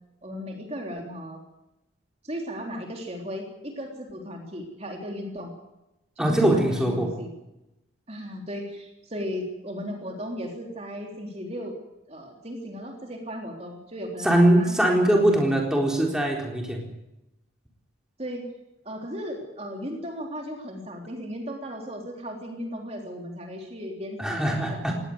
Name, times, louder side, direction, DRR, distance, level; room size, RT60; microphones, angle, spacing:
voice 1, 0.2-1.4 2.2-5.5 6.2-7.3 8.1-11.7 12.1-15.4 18.2-18.5 18.8-24.9, equal, 30° right, 1 dB, 3.5 m, -36 dB
voice 2, 6.2-7.1 14.2-16.8 24.2-24.9, right 1 dB, 5° right, 0 dB, 3.9 m, -21 dB
20.0 x 18.0 x 7.9 m, 0.93 s
head